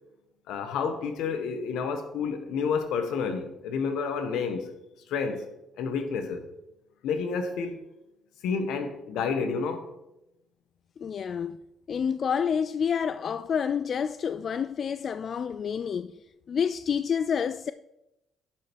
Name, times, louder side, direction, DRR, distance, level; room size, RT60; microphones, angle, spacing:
voice 1, 0.5-4.7 5.1-5.4 5.8-6.5 7.0-7.8 8.4-9.9, left 5 dB, 90° left, 1.2 m, -30 dB
voice 2, 11.0-11.6 11.9-16.2 16.5-17.7, left 7 dB, 55° left, 0.3 m, -28 dB
10.5 x 5.6 x 4.6 m
cardioid pair, 90°, 0 cm